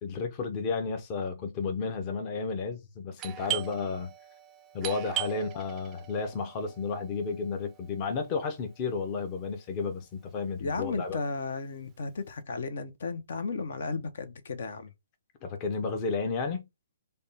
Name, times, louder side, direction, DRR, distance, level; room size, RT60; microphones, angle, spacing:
voice 1, 0.0-4.1 4.7-11.2 15.4-16.7, left 4 dB, 30° left, 0.6 m, -32 dB
Doorbell, 3.2-8.6, right 13 dB, 20° right, 0.4 m, -39 dB
voice 2, 10.6-14.9, left 4 dB, 65° left, 0.6 m, -34 dB
3.4 x 2.2 x 4.0 m
hypercardioid pair, 155°, 0 cm